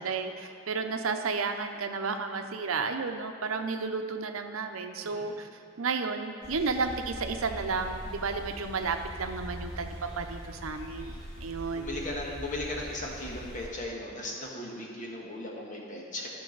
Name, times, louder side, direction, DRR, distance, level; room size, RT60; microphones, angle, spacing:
voice 1, 0.0-5.5 5.8-12.0, right 4 dB, 90° right, 6 dB, 0.7 m, -32 dB
sound 1, 6.4-13.7, equal, 20° left, 1.5 m, -42 dB
voice 2, 11.7-16.3, left 2 dB, 40° left, -2 dB, 1.5 m, -37 dB
15.0 x 6.2 x 3.9 m, 2.7 s
head